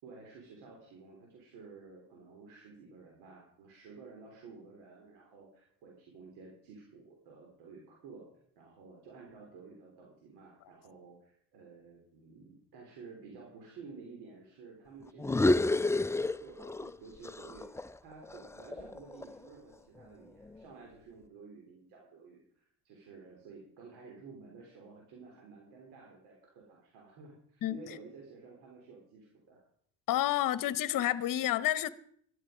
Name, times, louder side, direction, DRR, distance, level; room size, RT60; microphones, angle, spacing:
voice 1, 0.0-8.3 8.6-17.7 18.0-29.6, right 4 dB, 80° right, 3.6 m, -52 dB
sound 1, 15.2-16.9 17.2-19.5, left 2 dB, 5° left, 0.4 m, -30 dB
voice 2, 30.1-31.9, left 13 dB, 55° left, 0.9 m, -29 dB
13.5 x 11.0 x 5.0 m
supercardioid pair, 75°, 39 cm